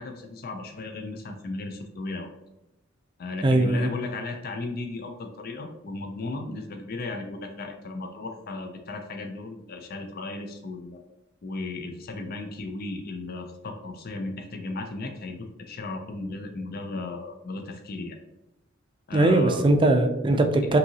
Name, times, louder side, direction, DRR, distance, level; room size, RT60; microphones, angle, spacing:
voice 1, 0.0-2.3 3.2-11.0 11.4-18.2 19.1-19.7, left 2 dB, 50° left, 4 dB, 0.5 m, -35 dB
voice 2, 3.4-3.9 19.1-20.8, right 2 dB, 25° right, 5 dB, 0.4 m, -20 dB
5.3 x 2.8 x 2.8 m, 0.93 s
head